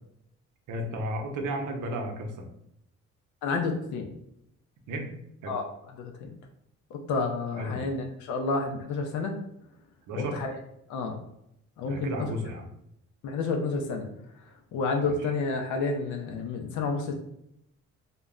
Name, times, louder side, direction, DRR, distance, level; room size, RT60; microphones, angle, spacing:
voice 1, 0.7-2.5 4.9-5.1 5.4-5.5 7.6-7.9 10.1-10.4 11.9-12.7 15.0-15.3, equal, 75° right, 3 dB, 0.6 m, -34 dB
voice 2, 3.4-4.1 5.5-5.7 6.0-6.3 6.9-9.4 10.2-10.5 10.9-11.2 11.8-12.1 13.2-14.1 14.7-17.1, left 3 dB, 80° left, 2 dB, 0.5 m, -30 dB
2.2 x 2.0 x 3.5 m, 0.78 s
cardioid pair, 90°, 30 cm